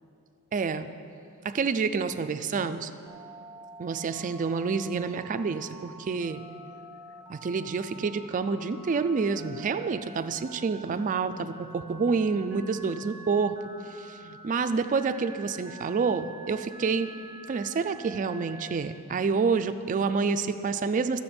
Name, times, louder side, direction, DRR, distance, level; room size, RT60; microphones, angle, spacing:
voice 1, 0.5-0.9 1.4-2.9 3.8-6.4 7.3-13.6 14.0-17.1 17.5-21.2, right 5 dB, 35° right, 10 dB, 0.3 m, -28 dB
Telephone, 3.1-18.8, right 2 dB, 15° right, 0.8 m, -47 dB
11.5 x 7.4 x 4.3 m, 2.6 s
head